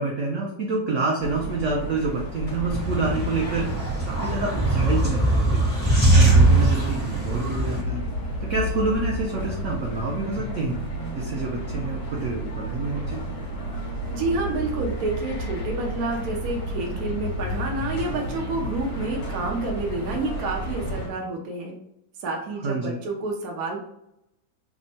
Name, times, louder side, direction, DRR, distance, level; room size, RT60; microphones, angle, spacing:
voice 1, 0.0-3.7 4.1-5.7 6.1-8.0 8.4-10.8 11.1-13.2 22.6-23.0, right 3 dB, 80° right, -1 dB, 0.6 m, -28 dB
sound 1, 1.2-21.1, equal, 65° left, 1.4 m, -32 dB
sound 2, 2.7-7.8, right 2 dB, 5° right, 1.0 m, -21 dB
voice 2, 14.1-21.8 22.2-23.8, right 2 dB, 65° right, 0 dB, 1.0 m, -29 dB
3.5 x 2.1 x 4.0 m, 0.81 s
omnidirectional pair, 2.0 m